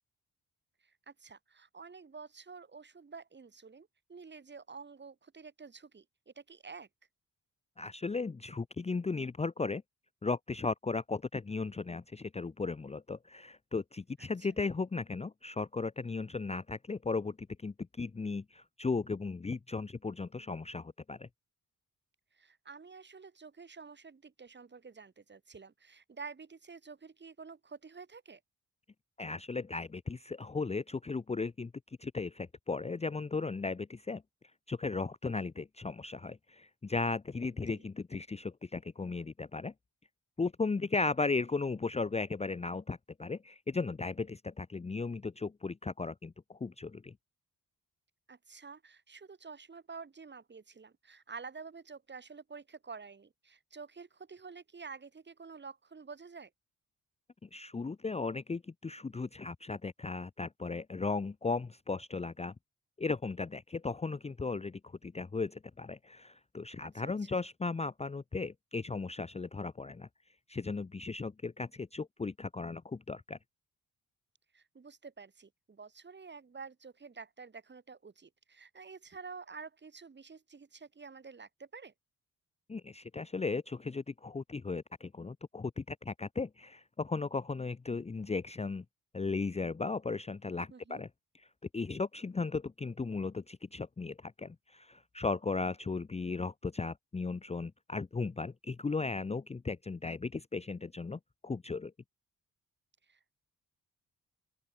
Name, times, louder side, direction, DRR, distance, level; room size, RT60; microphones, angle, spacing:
voice 1, 0.8-6.9 14.2-14.5 22.3-28.4 37.7-37.8 48.3-56.5 66.8-67.4 74.5-81.9 90.7-91.0 103.1-103.3, right 5 dB, 30° right, 2.9 m, -49 dB
voice 2, 7.8-9.8 10.2-17.4 17.6-21.3 29.2-31.7 32.0-34.2 34.7-39.7 40.4-47.1 57.4-62.5 63.0-70.1 70.5-73.4 82.7-88.8 89.1-91.1 91.7-101.9, left 4 dB, 20° left, 0.7 m, -36 dB
open air
cardioid pair, 120°, 34 cm